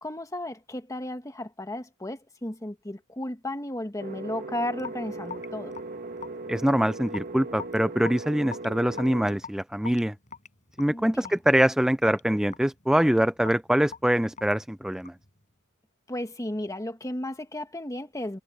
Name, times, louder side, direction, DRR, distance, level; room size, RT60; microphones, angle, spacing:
voice 1, 0.0-5.8 10.9-11.4 16.1-18.4, left 1 dB, 15° left, 1.6 m, -34 dB
sound 1, 4.0-9.3, right 3 dB, 45° right, 2.5 m, -38 dB
Raindrop / Drip, 4.8-15.3, left 6 dB, 35° left, 5.3 m, -44 dB
voice 2, 6.5-10.1 10.8-15.1, equal, 5° right, 0.3 m, -24 dB
head